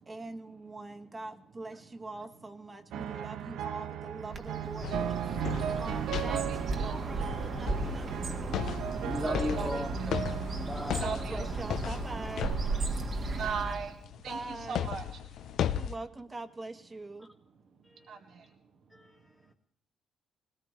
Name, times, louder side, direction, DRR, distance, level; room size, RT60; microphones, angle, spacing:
voice 1, 0.1-8.6 9.6-9.7 11.0-12.6 14.3-14.9 15.6-17.3, right 2 dB, 25° right, 8 dB, 1.4 m, -43 dB
sound 1, 2.9-11.5 12.3-12.8, right 10 dB, 85° right, 0.6 m, -37 dB
Bird, 4.3-14.0, right 3 dB, 45° right, 1.7 m, -35 dB
sound 2, 4.8-13.5 14.0-16.0, left 9 dB, 75° left, 0.6 m, -37 dB
voice 2, 6.2-7.1 8.4-9.7 11.0-11.5 12.9-15.6 17.7-18.6, right 6 dB, 70° right, 4 dB, 1.7 m, -40 dB
voice 3, 9.0-11.3 15.7-15.9 17.8-18.2 18.9-19.3, left 1 dB, 5° left, -2 dB, 1.4 m, -38 dB
20.5 x 18.5 x 3.3 m, 0.68 s
cardioid pair, 90°, 0 cm